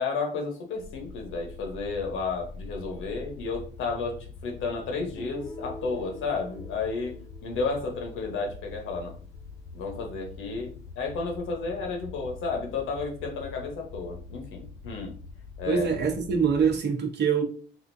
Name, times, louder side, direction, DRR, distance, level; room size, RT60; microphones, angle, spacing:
voice 1, 0.0-7.2 7.4-9.1 9.7-15.1 15.6-15.9, left 4 dB, 85° left, 0.9 m, -32 dB
sound 1, 0.8-16.8, left 4 dB, 55° left, 0.6 m, -44 dB
Guitar, 5.2-9.1, left 2 dB, 15° left, 0.4 m, -45 dB
voice 2, 15.7-17.4, right 6 dB, 60° right, 0.8 m, -24 dB
3.6 x 2.5 x 2.6 m
cardioid pair, 90°, 20 cm